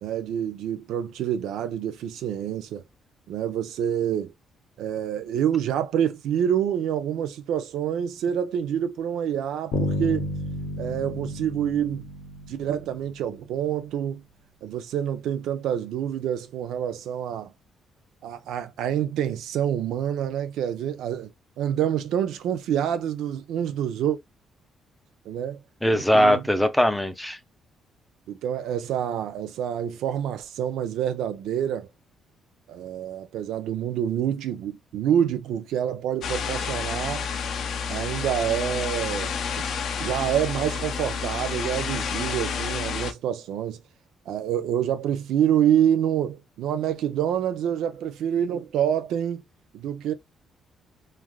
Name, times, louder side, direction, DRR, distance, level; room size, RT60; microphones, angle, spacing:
voice 1, 0.0-2.8 3.3-4.3 4.8-10.3 10.8-12.0 12.5-14.2 14.6-17.5 18.2-21.3 21.6-24.2 25.3-25.6 25.9-26.4 28.3-31.9 32.7-37.3 37.9-39.7 40.0-43.8 44.3-49.4 49.7-50.1, right 9 dB, 85° right, 0.5 m, -27 dB
Bass guitar, 9.7-13.5, left 2 dB, 90° left, 0.9 m, -31 dB
voice 2, 25.8-27.4, equal, 5° left, 0.6 m, -20 dB
sound 1, 36.2-43.1, left 6 dB, 70° left, 0.5 m, -30 dB
3.2 x 2.4 x 2.3 m
cardioid pair, 90°, 0 cm